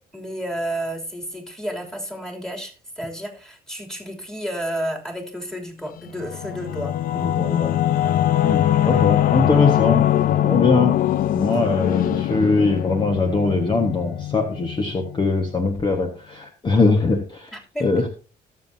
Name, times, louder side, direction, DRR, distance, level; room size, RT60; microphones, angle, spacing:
voice 1, 0.1-6.9 11.4-11.5 17.5-17.9, equal, 5° left, 0 dB, 3.2 m, -31 dB
Singing / Musical instrument, 6.1-15.2, left 12 dB, 55° left, 0.5 m, -22 dB
voice 2, 7.1-7.7 8.4-11.0 11.3-17.5 17.8-18.1, left 3 dB, 30° left, 3 dB, 1.5 m, -21 dB
19.0 x 7.6 x 2.8 m, 0.36 s
cardioid pair, 110°, 17 cm